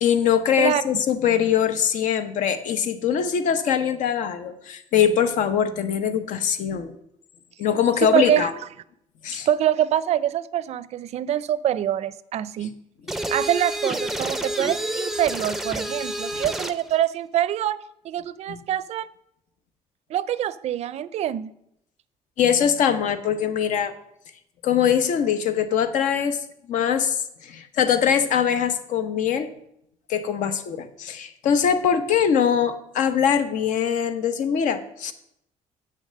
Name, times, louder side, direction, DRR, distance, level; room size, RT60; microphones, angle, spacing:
voice 1, 0.0-6.9 7.6-8.5 9.2-9.5 18.5-18.6 22.4-23.9 24.6-26.4 26.7-29.5 30.1-35.1, left 8 dB, 75° left, 11 dB, 0.8 m, -22 dB
voice 2, 0.6-1.0 8.1-8.5 9.3-12.8 13.3-17.8 18.0-19.1 20.1-21.5, right 11 dB, 55° right, 17 dB, 0.4 m, -25 dB
sound 1, 13.1-16.8, right 1 dB, ahead, 0.4 m, -29 dB
7.8 x 6.5 x 6.5 m, 0.77 s
cardioid pair, 150°, 13 cm